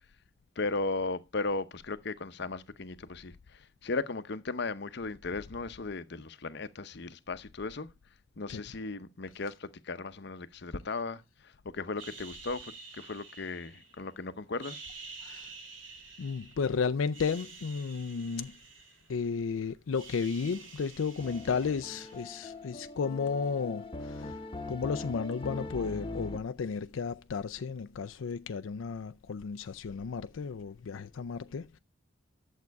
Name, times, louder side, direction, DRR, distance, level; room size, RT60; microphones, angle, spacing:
voice 1, 0.6-7.9 8.4-14.8, left 3 dB, 60° left, 0.8 m, -36 dB
sound 1, 12.0-14.1 14.5-16.7 17.0-19.5 19.7-22.6, right 4 dB, 75° right, 2.4 m, -49 dB
voice 2, 15.2-15.5 16.2-18.6 19.1-24.4 24.7-31.8, left 5 dB, 85° left, 0.5 m, -33 dB
sound 2, 21.2-26.4, left 2 dB, 25° left, 1.0 m, -41 dB
11.0 x 7.4 x 4.6 m
head